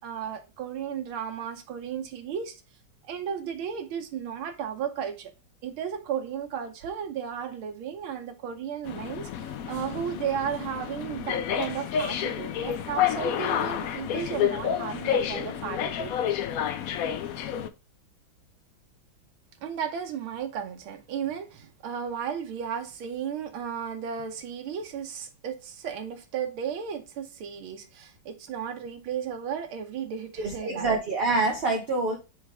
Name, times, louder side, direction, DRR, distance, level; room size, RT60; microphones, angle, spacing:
voice 1, 0.0-2.6 3.1-5.3 5.6-16.1 19.6-31.0, right 8 dB, 85° right, 1.8 m, -34 dB
sound 1, 8.8-17.7, left 9 dB, 75° left, 0.8 m, -29 dB
voice 2, 30.4-32.2, right 3 dB, 40° right, 0.9 m, -26 dB
6.8 x 3.3 x 4.8 m
omnidirectional pair, 2.2 m